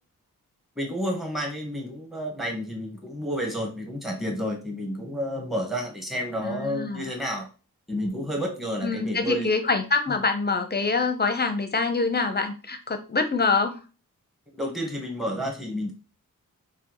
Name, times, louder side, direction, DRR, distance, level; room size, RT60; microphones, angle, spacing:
voice 1, 0.8-7.5 7.9-9.5 14.5-15.9, equal, ahead, 1 dB, 1.3 m, -30 dB
voice 2, 6.4-7.1 8.8-13.8, left 4 dB, 25° left, 8 dB, 0.7 m, -25 dB
3.4 x 2.3 x 3.0 m, 0.33 s
supercardioid pair, 45°, 36 cm